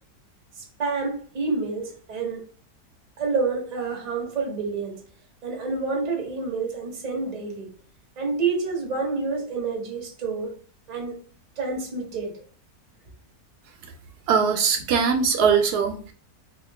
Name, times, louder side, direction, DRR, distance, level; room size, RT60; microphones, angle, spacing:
voice 1, 0.6-2.4 3.2-5.0 5.4-7.7 8.2-10.5 10.9-11.2 11.6-12.4, right 4 dB, 35° right, 0.8 m, -28 dB
voice 2, 14.3-16.1, right 6 dB, 75° right, 1.1 m, -21 dB
2.9 x 2.7 x 3.3 m
omnidirectional pair, 1.7 m